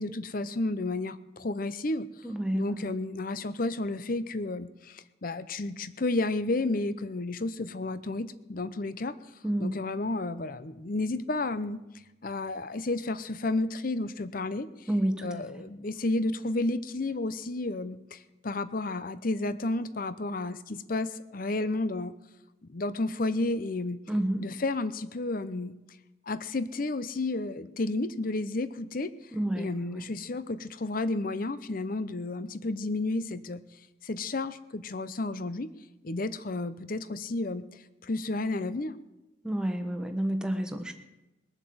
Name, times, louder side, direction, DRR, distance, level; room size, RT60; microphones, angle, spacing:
voice 1, 0.0-2.1 2.5-9.2 9.6-11.8 12.2-14.9 15.2-22.1 22.7-24.0 24.4-25.8 26.3-29.1 29.5-33.6 34.0-35.7 36.0-39.0, left 2 dB, 45° left, 14 dB, 0.7 m, -32 dB
voice 2, 2.2-2.9 9.4-9.7 14.9-15.3 24.1-24.4 29.3-30.0 39.4-40.9, right 1 dB, 5° right, 5 dB, 1.1 m, -29 dB
21.5 x 7.4 x 7.9 m, 1.0 s
head